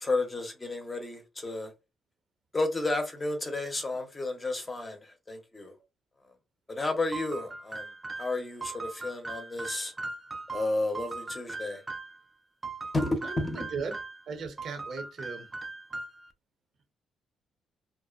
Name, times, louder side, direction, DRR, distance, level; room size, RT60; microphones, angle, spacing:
voice 1, 0.0-1.7 2.5-5.7 6.7-7.9 8.2-9.9 10.5-11.8 12.9-13.7, left 2 dB, 25° left, 0.7 m, -32 dB
sound 1, 7.1-12.2 12.6-14.2 14.6-16.3, right 3 dB, 20° right, 0.4 m, -39 dB
voice 2, 13.2-14.0 14.3-15.5, right 4 dB, 60° right, 0.7 m, -37 dB
2.5 x 2.1 x 2.4 m
cardioid pair, 90°, 0 cm